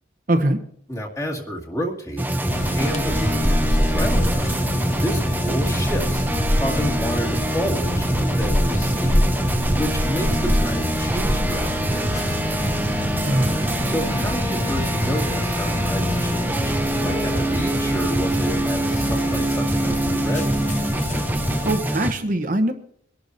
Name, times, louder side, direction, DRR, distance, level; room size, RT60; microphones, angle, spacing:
voice 1, 0.3-0.6 13.2-13.6 21.6-22.7, right 1 dB, 40° right, 6 dB, 0.8 m, -22 dB
voice 2, 0.9-4.6 4.9-6.3 6.6-9.5 9.8-12.1 13.8-20.5, equal, 15° left, -1 dB, 2.1 m, -30 dB
sound 1, 2.2-22.1, right 1 dB, 10° right, 0.5 m, -24 dB
sound 2, 2.5-21.8, left 1 dB, 35° left, 1.0 m, -26 dB
sound 3, 12.6-21.8, equal, 65° left, 2.4 m, -42 dB
23.5 x 11.5 x 2.7 m, 0.64 s
head